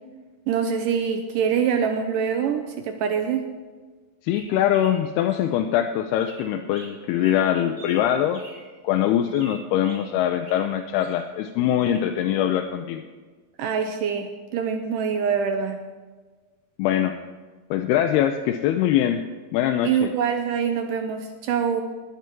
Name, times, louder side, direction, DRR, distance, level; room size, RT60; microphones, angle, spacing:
voice 1, 0.5-3.5 13.6-15.8 19.8-21.8, right 7 dB, 85° right, 6 dB, 1.9 m, -24 dB
voice 2, 4.2-8.4 8.8-13.0 16.8-17.2 17.7-19.2 19.5-20.1, left 10 dB, 80° left, 5 dB, 2.6 m, -23 dB
sound 1, 4.3-5.4 6.1-8.7 9.2-11.1 11.7-12.1, right 1 dB, 20° right, 2.4 m, -46 dB
18.5 x 9.6 x 4.6 m, 1.4 s
omnidirectional pair, 4.6 m